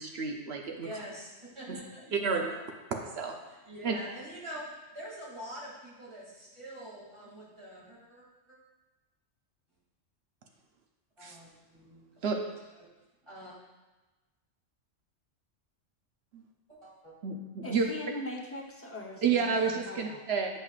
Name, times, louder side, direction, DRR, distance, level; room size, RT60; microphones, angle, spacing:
voice 1, 0.0-0.9 1.7-1.8 2.1-2.5 3.2-3.4 3.8-3.9 11.2-11.4 12.2-12.4 16.3-16.4 17.2-17.9 19.2-20.5, right 5 dB, 60° right, 2 dB, 0.8 m, -30 dB
voice 2, 0.8-2.6 3.5-8.6 11.2-12.1 12.3-12.4 12.8-12.9 13.2-13.5 16.7-17.1 19.3-19.7, equal, 25° right, -8 dB, 2.4 m, -45 dB
voice 3, 17.6-19.3 19.7-20.2, left 1 dB, 15° left, -2 dB, 0.6 m, -40 dB
8.8 x 5.5 x 2.4 m, 1.2 s
omnidirectional pair, 1.3 m